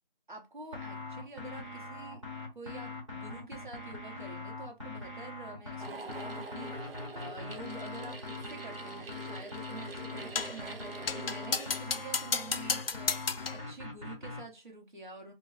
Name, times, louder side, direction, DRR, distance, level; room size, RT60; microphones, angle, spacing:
voice 1, 0.3-2.2 2.5-15.3, right 3 dB, 55° right, 1.0 m, -47 dB
sound 1, 0.7-14.4, left 3 dB, 35° right, 1.0 m, -42 dB
sound 2, 5.8-11.8, right 3 dB, 80° right, 0.6 m, -45 dB
sound 3, 10.3-10.6 11.1-13.7, left 5 dB, 85° left, 0.5 m, -33 dB
2.2 x 2.0 x 3.6 m
figure-of-eight pair, 175°, 29 cm